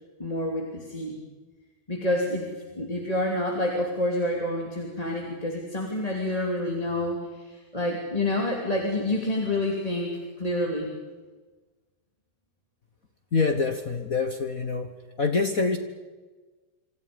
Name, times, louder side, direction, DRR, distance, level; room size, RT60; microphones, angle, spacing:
voice 1, 0.2-1.2 1.9-10.9, left 1 dB, 10° left, -1 dB, 2.6 m, -28 dB
voice 2, 13.3-14.9 15.2-15.8, left 4 dB, 50° left, 6 dB, 1.0 m, -25 dB
26.5 x 26.5 x 5.3 m, 1.3 s
omnidirectional pair, 3.5 m